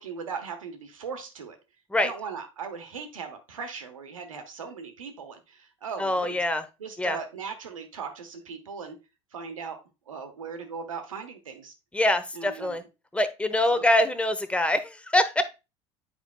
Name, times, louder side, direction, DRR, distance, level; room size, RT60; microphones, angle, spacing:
voice 1, 0.0-1.6 1.9-6.4 6.8-9.0 9.3-9.8 10.1-11.7 12.3-12.8 13.7-13.9, right 5 dB, 85° right, 6 dB, 1.2 m, -38 dB
voice 2, 6.0-6.6 7.0-7.2 11.9-12.8 13.1-15.4, left 1 dB, 5° left, 10 dB, 0.9 m, -24 dB
8.8 x 5.0 x 2.2 m, 0.27 s
hypercardioid pair, 70°, 17 cm